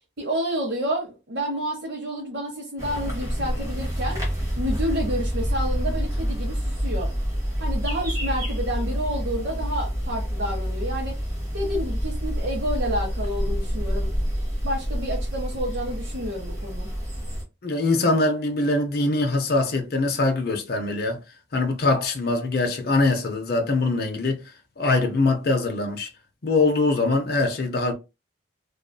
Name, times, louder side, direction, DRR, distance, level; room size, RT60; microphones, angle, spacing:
voice 1, 0.2-4.2 4.6-7.1 7.6-11.1 11.5-14.1 14.6-16.9, equal, 65° right, 0.8 m, -29 dB
sound 1, 2.8-17.4, equal, 15° right, 0.9 m, -27 dB
voice 2, 17.6-21.2 21.5-24.4 24.8-26.1 26.4-27.9, left 2 dB, 55° left, 0.5 m, -23 dB
2.5 x 2.4 x 2.2 m
head